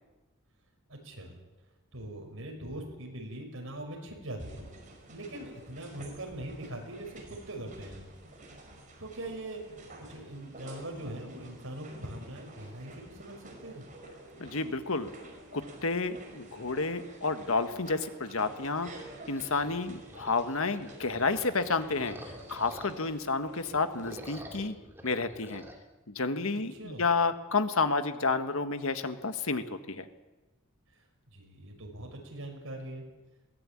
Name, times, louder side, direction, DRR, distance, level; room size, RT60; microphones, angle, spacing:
voice 1, 0.9-1.4 1.9-4.6 5.1-8.0 9.0-9.6 10.1-13.8 26.7-27.0 31.3-33.0, right 1 dB, 65° right, 2 dB, 6.1 m, -42 dB
sound 1, 4.4-24.3, right 1 dB, 35° right, 5.2 m, -50 dB
voice 2, 14.4-15.1 15.5-18.9 19.3-22.2 22.5-24.7 25.0-25.6 26.1-30.1, left 4 dB, 70° left, 9 dB, 1.5 m, -30 dB
sound 2, 19.4-23.2 23.6-25.8, right 1 dB, 10° right, 3.0 m, -48 dB
22.0 x 18.0 x 8.7 m, 1.1 s
head